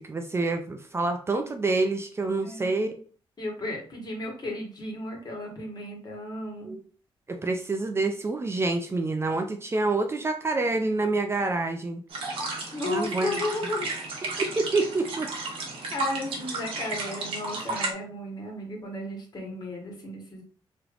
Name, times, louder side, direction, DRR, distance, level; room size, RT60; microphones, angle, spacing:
voice 1, 0.0-3.0 6.6-6.8 7.3-12.0 12.9-13.3 14.4-15.3, right 3 dB, 25° right, 5 dB, 0.4 m, -27 dB
voice 2, 2.4-2.8 3.4-6.8 12.7-13.9 15.9-20.4, left 1 dB, 45° left, -1 dB, 1.4 m, -34 dB
sound 1, 12.1-17.9, right 2 dB, 70° right, 1.0 m, -33 dB
3.3 x 3.0 x 2.4 m, 0.41 s
cardioid pair, 95°, 10 cm